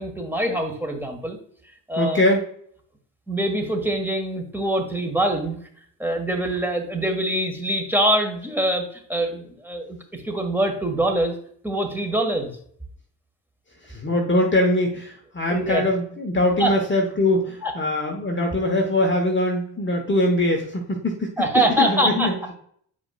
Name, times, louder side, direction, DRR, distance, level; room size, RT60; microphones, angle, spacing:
voice 1, 0.0-1.4 1.9-2.2 3.3-5.6 6.0-11.3 11.6-12.5 15.5-15.8 16.6-16.7 17.6-17.7 21.4-22.3, right 1 dB, 5° right, 3 dB, 1.6 m, -24 dB
voice 2, 2.0-2.4 13.8-21.3 21.8-22.5, left 1 dB, 25° left, 1 dB, 1.3 m, -22 dB
8.1 x 5.0 x 2.4 m, 0.62 s
hypercardioid pair, 50°, 49 cm